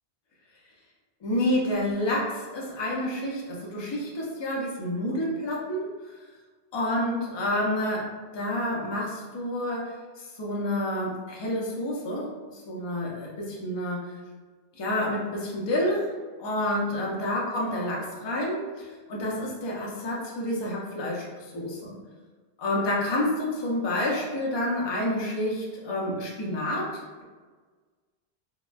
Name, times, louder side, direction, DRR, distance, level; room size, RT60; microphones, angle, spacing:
voice 1, 1.2-5.9 6.7-14.1 14.8-16.1 16.4-21.8 22.6-27.2, left 1 dB, 45° left, -3 dB, 0.3 m, -29 dB
2.9 x 2.1 x 2.3 m, 1.4 s
omnidirectional pair, 1.1 m